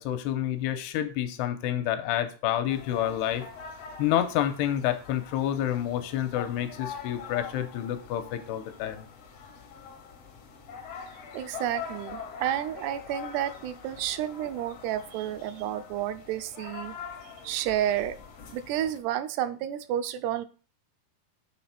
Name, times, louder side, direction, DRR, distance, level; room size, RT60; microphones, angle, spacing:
voice 1, 0.0-3.4 4.0-9.1, left 11 dB, 85° left, 9 dB, 2.8 m, -29 dB
sound 1, 2.7-19.0, left 6 dB, 70° left, 1.5 m, -44 dB
voice 2, 11.3-16.9 17.4-18.2 18.5-20.5, right 11 dB, 80° right, 9 dB, 2.6 m, -31 dB
8.5 x 4.2 x 5.8 m, 0.36 s
omnidirectional pair, 4.8 m